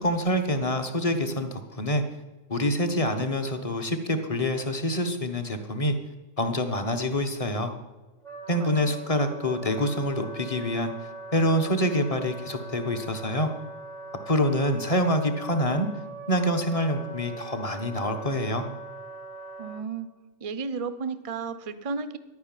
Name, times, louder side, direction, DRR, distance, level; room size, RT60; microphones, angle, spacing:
voice 1, 0.0-2.0 2.5-5.9 6.4-7.7 8.5-10.9 11.3-13.5 14.3-15.9 16.3-18.6, equal, 30° left, 8 dB, 1.3 m, -26 dB
Wind instrument woodwind instrument, 8.2-19.8, right 3 dB, 70° left, 3.9 m, -41 dB
voice 2, 19.6-20.1 20.4-22.2, right 5 dB, 35° right, 13 dB, 0.7 m, -33 dB
11.0 x 9.6 x 9.0 m, 1.2 s
omnidirectional pair, 1.3 m